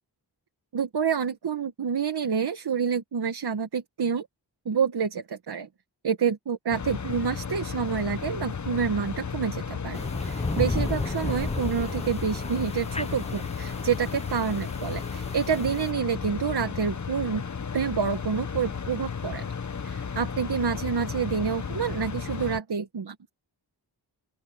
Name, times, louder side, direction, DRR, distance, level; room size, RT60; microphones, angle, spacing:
voice 1, 0.7-4.3 4.6-5.7 6.0-17.4 17.7-19.4 19.8-23.1, right 6 dB, 65° right, 1.4 m, -28 dB
sound 1, 6.7-22.6, left 6 dB, 40° left, 1.1 m, -34 dB
sound 2, 9.9-15.9, left 2 dB, 15° left, 0.9 m, -33 dB
open air
wide cardioid pair, 95°, 43 cm